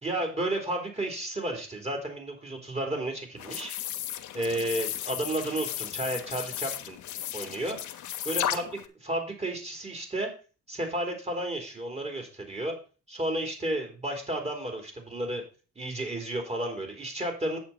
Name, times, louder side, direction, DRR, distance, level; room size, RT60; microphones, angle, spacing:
voice 1, 0.0-3.7 4.3-7.0 7.3-7.8 8.3-8.6 9.0-10.3 10.7-12.7 13.1-15.4 15.8-17.6, right 1 dB, 20° right, 3 dB, 3.6 m, -32 dB
sound 1, 3.4-8.9, left 12 dB, 75° left, 1.0 m, -35 dB
8.6 x 7.7 x 4.2 m, 0.34 s
cardioid pair, 90°, 30 cm